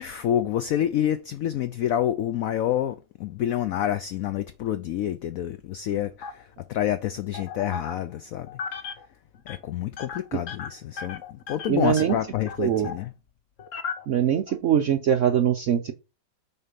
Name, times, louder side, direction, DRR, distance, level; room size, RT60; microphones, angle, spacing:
voice 1, 0.0-8.5 9.5-13.1, left 11 dB, 85° left, 0.7 m, -28 dB
sound 1, 6.2-6.8 7.3-8.2 8.5-9.1 9.3-9.6 9.9-13.1 13.6-14.6, left 6 dB, 50° left, 1.1 m, -36 dB
voice 2, 11.7-12.2 12.6-12.9 14.1-15.9, right 9 dB, 75° right, 0.7 m, -22 dB
6.9 x 4.4 x 5.1 m
omnidirectional pair, 2.0 m